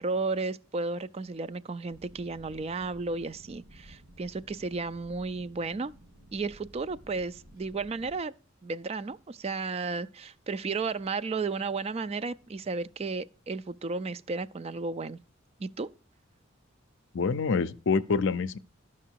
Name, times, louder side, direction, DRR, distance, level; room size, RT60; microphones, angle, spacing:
voice 1, 0.0-5.9 6.3-8.3 8.6-15.2 15.6-15.9, right 4 dB, 30° right, 0.4 m, -33 dB
sound 1, 1.9-8.2, right 1 dB, 80° right, 4.0 m, -54 dB
voice 2, 17.1-18.6, left 4 dB, 65° left, 0.5 m, -26 dB
13.0 x 5.9 x 4.6 m
head